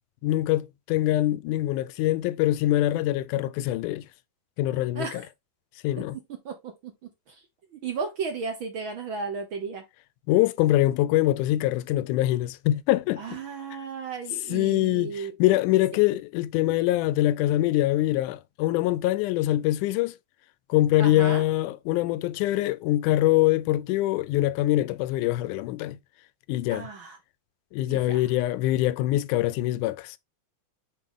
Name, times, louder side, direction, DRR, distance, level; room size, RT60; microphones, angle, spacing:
voice 1, 0.2-4.1 4.6-5.1 5.8-6.2 10.3-13.2 14.5-20.1 20.7-26.0 26.5-26.9 27.7-30.2, left 15 dB, 85° left, 2.1 m, -24 dB
voice 2, 4.9-5.3 6.0-6.1 6.4-6.9 7.3-7.4 7.7-9.8 13.2-15.3 21.0-21.4 26.7-27.2 27.9-28.3, right 5 dB, 60° right, 1.3 m, -34 dB
5.9 x 4.7 x 3.6 m
omnidirectional pair, 3.5 m